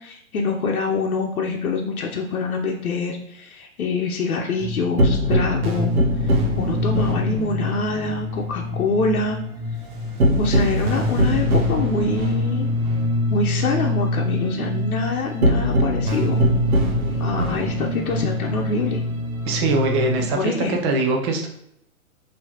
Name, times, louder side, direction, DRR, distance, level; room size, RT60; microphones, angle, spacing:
voice 1, 0.0-5.9 6.6-9.4 10.4-12.7 13.3-16.4 17.2-19.0 20.3-20.9, left 3 dB, 80° left, 0 dB, 0.8 m, -25 dB
sound 1, 4.6-20.3, left 1 dB, 80° right, 1.2 m, -23 dB
sound 2, 9.5-14.7, right 4 dB, 45° right, 1.1 m, -38 dB
voice 2, 19.4-21.5, right 3 dB, 20° right, 3 dB, 0.4 m, -22 dB
4.5 x 2.9 x 2.9 m, 0.76 s
hypercardioid pair, 130°, 42 cm